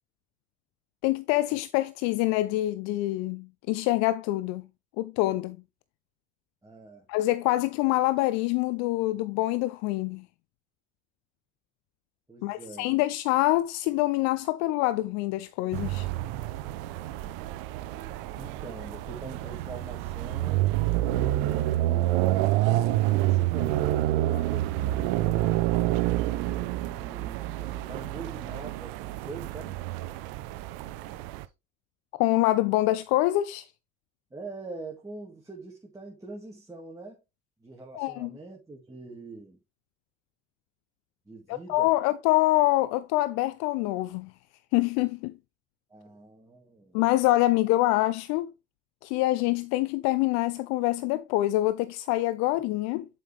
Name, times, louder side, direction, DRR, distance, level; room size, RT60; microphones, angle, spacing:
voice 1, 1.0-4.7 5.0-5.6 7.1-10.2 12.4-16.1 32.2-33.7 37.9-38.3 41.5-44.3 44.7-45.3 46.9-48.5 49.0-53.1, left 17 dB, 65° left, 0.5 m, -25 dB
voice 2, 6.6-7.1 12.3-12.9 18.3-20.7 21.2-25.2 26.0-29.8 31.1-31.2 34.3-37.2 37.6-39.6 41.3-42.0 45.9-47.0, right 3 dB, 10° right, 2.0 m, -44 dB
sound 1, 15.7-31.5, right 15 dB, 70° right, 0.6 m, -28 dB
7.4 x 5.4 x 3.3 m
hypercardioid pair, 65°, 29 cm